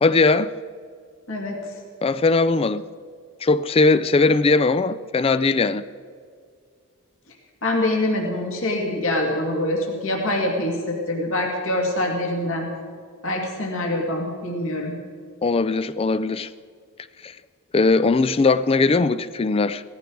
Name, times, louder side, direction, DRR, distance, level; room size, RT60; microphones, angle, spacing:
voice 1, 0.0-0.5 2.0-2.8 3.4-5.8 15.4-16.5 17.2-17.3 17.7-19.8, left 3 dB, 25° left, 0.4 m, -19 dB
voice 2, 1.3-1.8 7.6-12.7 13.2-14.9, left 1 dB, 60° left, 2.4 m, -25 dB
17.0 x 14.5 x 4.7 m
head